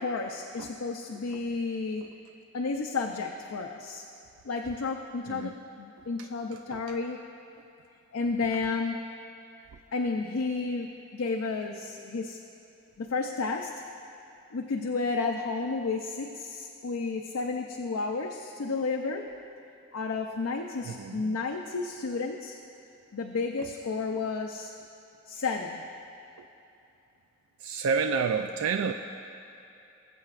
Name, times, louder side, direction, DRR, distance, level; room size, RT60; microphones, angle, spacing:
voice 1, 0.0-2.1 2.5-4.0 4.4-7.3 8.1-9.0 9.9-12.4 13.0-13.7 14.5-19.3 19.9-22.6 23.1-24.7 25.3-25.9, left 4 dB, 90° left, 2 dB, 0.5 m, -32 dB
voice 2, 20.9-21.4 27.6-28.9, right 5 dB, 90° right, 5 dB, 0.4 m, -29 dB
21.0 x 7.6 x 2.4 m, 2.7 s
head